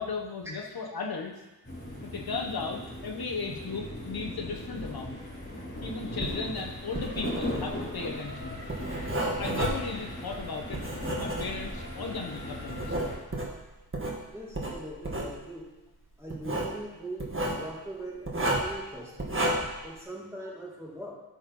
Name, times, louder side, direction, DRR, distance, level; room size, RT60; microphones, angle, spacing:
voice 1, 0.0-1.3 2.0-5.2 5.8-8.6 9.4-10.8 11.1-12.9, left 4 dB, 70° left, 2 dB, 1.0 m, -36 dB
sound 1, 1.6-13.2, left 1 dB, 25° left, 3.7 m, -39 dB
Writing, 6.1-11.9 12.4-14.2 14.5-15.3 16.3-16.8 17.2-17.6 18.3-18.8 19.2-19.8, right 1 dB, 30° right, 1.6 m, -32 dB
voice 2, 14.3-15.7 16.2-19.4 19.8-21.1, right 1 dB, 5° right, -4 dB, 2.4 m, -41 dB
12.0 x 4.4 x 5.3 m, 1.1 s
wide cardioid pair, 105°, 39 cm